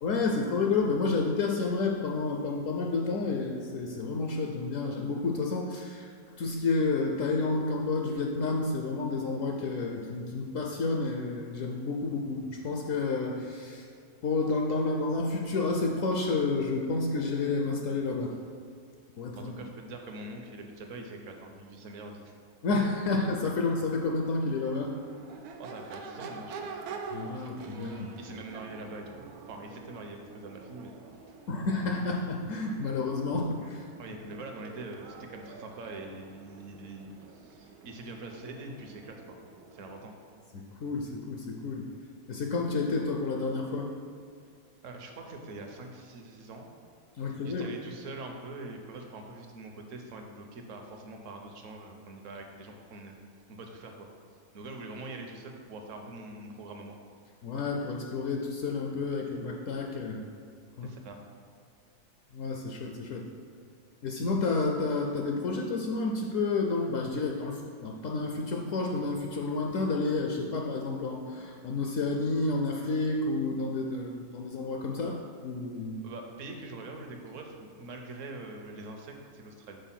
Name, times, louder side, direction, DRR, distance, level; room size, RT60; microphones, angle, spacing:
voice 1, 0.0-6.1 6.4-13.9 14.2-18.3 19.2-19.5 22.6-24.9 27.1-28.1 31.5-33.9 40.8-41.9 42.3-43.9 47.2-47.6 57.4-60.3 60.8-60.9 62.3-63.3 64.0-76.0, left 3 dB, 70° left, 1 dB, 0.8 m, -30 dB
voice 2, 19.3-22.4 25.6-26.8 28.2-30.9 31.3-31.4 34.0-39.4 39.7-40.1 44.8-46.7 47.4-53.2 53.5-54.1 54.5-57.0 60.8-61.2 76.0-79.8, right 2 dB, 60° right, 3 dB, 1.0 m, -44 dB
Crowd / Race car auto racing / Accelerating revving vroom, 23.0-40.1, right 4 dB, 90° right, 1.1 m, -47 dB
5.4 x 4.2 x 5.8 m, 2.1 s
omnidirectional pair, 1.6 m